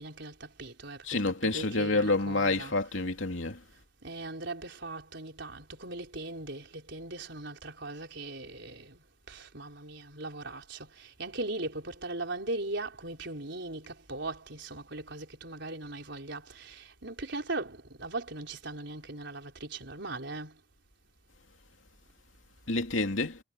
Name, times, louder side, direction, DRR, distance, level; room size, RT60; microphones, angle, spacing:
voice 1, 0.0-2.7 4.0-20.6, right 2 dB, 60° right, 5.3 m, -39 dB
voice 2, 1.0-3.6 22.7-23.4, left 3 dB, 80° left, 2.8 m, -28 dB
head